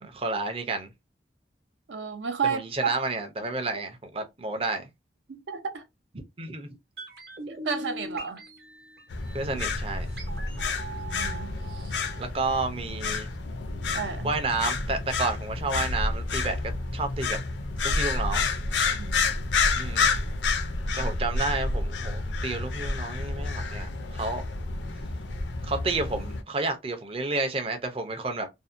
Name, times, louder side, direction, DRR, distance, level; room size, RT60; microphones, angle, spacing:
voice 1, 0.0-0.9 2.5-4.9 6.4-6.7 9.3-10.1 12.2-13.3 14.2-16.6 16.9-17.4 17.8-18.5 19.7-20.2 21.0-23.9 24.1-24.5 25.6-28.5, right 3 dB, 30° right, 0.5 m, -30 dB
voice 2, 1.9-2.9 5.3-5.8 7.5-8.4 10.9-11.5 13.9-14.3 18.9-19.3 21.0-21.1, right 6 dB, 80° right, 0.5 m, -32 dB
sound 1, 7.0-13.0 13.3-13.4, right 1 dB, 60° right, 0.8 m, -42 dB
sound 2, 9.1-26.4, left 3 dB, 80° left, 0.5 m, -29 dB
2.6 x 2.1 x 2.4 m
head